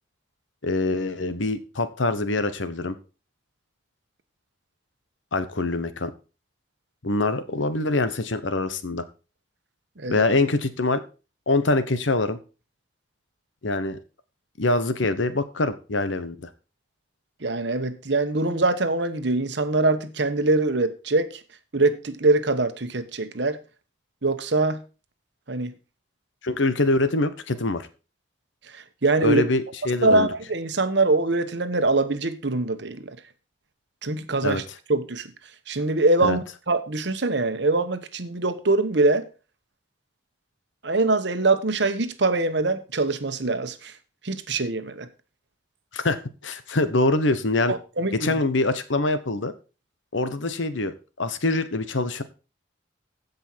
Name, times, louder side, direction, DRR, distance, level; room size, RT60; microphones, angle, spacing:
voice 1, 0.6-2.9 5.3-6.1 7.0-9.0 10.1-11.0 11.5-12.4 13.6-14.0 14.6-16.5 26.4-27.9 29.2-30.3 34.4-34.6 36.2-36.4 45.9-47.7 48.1-49.5 50.1-52.2, left 2 dB, 75° left, 1.1 m, -24 dB
voice 2, 17.4-21.4 21.7-23.6 24.2-24.8 25.5-25.7 28.7-29.4 30.0-33.2 34.0-34.6 34.9-35.3 35.7-39.2 40.8-43.9 44.2-45.1 47.7-48.3, right 2 dB, 60° right, 1.1 m, -23 dB
15.5 x 5.4 x 4.5 m
head